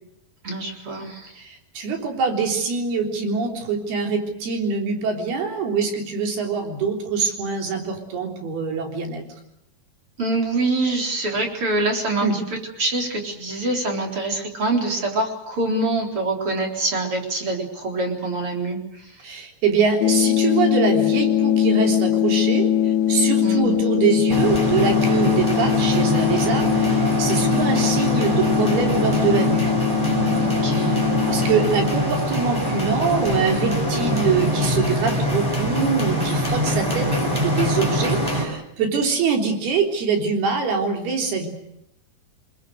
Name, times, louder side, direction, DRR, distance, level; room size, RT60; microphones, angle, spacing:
voice 1, 0.4-1.4 10.2-19.2 23.4-23.8 30.4-31.1, right 2 dB, 30° right, 3 dB, 4.4 m, -25 dB
voice 2, 1.4-9.2 12.2-12.4 19.2-29.7 30.9-41.5, right 5 dB, 65° right, 3 dB, 5.5 m, -24 dB
sound 1, 20.0-32.0, left 10 dB, 85° left, 3.6 m, -21 dB
sound 2, 24.3-38.5, equal, 5° right, 5.4 m, -23 dB
29.0 x 21.5 x 6.6 m, 0.82 s
omnidirectional pair, 5.0 m